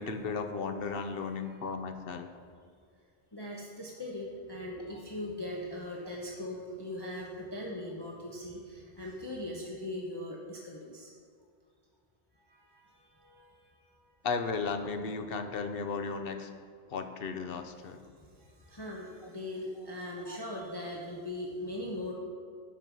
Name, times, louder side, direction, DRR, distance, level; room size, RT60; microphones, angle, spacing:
voice 1, 0.0-2.3 4.9-5.0 14.2-16.5 16.9-18.0 20.3-20.4, left 4 dB, 60° left, 6 dB, 0.9 m, -35 dB
voice 2, 3.3-11.1 12.5-12.6 13.2-13.5 18.7-22.1, left 1 dB, 25° left, -3 dB, 0.9 m, -40 dB
11.0 x 5.4 x 6.2 m, 2.2 s
omnidirectional pair, 1.1 m